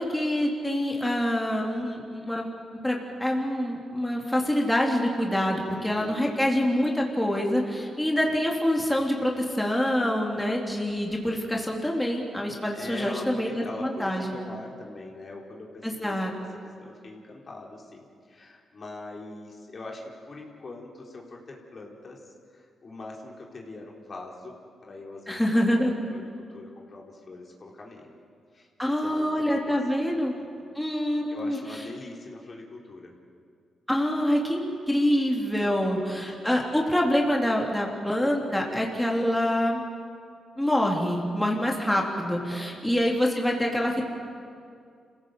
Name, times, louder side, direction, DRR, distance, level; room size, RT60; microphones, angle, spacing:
voice 1, 0.0-2.5 2.8-14.3 15.8-16.3 25.3-25.9 28.8-30.4 30.8-31.6 33.9-39.8 40.6-44.0, equal, 10° left, -1 dB, 3.6 m, -26 dB
voice 2, 5.6-6.4 12.7-16.4 16.8-22.2 22.5-24.5 24.8-25.4 25.7-28.2 28.5-30.7 31.3-33.1 35.5-36.4 41.5-42.0 42.4-42.8, left 2 dB, 50° left, -1 dB, 3.9 m, -43 dB
27.0 x 16.5 x 8.0 m, 2.3 s
cardioid pair, 65°, 0 cm